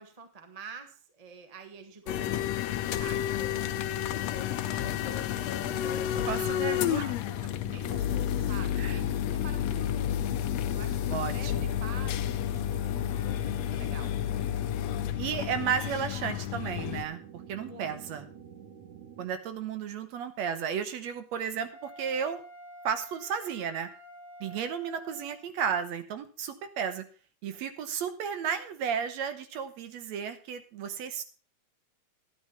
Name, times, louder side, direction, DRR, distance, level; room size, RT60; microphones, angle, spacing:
voice 1, 0.0-5.2 5.8-7.2 7.6-10.4 10.7-14.2 17.6-18.2, right 4 dB, 35° right, 6 dB, 0.5 m, -48 dB
sound 1, 2.1-17.0, left 11 dB, 75° left, 1.8 m, -31 dB
sound 2, 3.4-19.3, right 8 dB, 90° right, 2.9 m, -48 dB
voice 2, 6.3-7.0 8.8-8.9 11.1-11.7 15.2-17.2 17.5-18.3 19.2-22.4 22.8-23.9 24.4-27.0 27.4-31.2, right 7 dB, 70° right, 10 dB, 2.1 m, -33 dB
Wind instrument woodwind instrument, 21.7-25.5, equal, ahead, 1.8 m, -49 dB
12.0 x 9.8 x 4.3 m, 0.39 s
omnidirectional pair, 3.3 m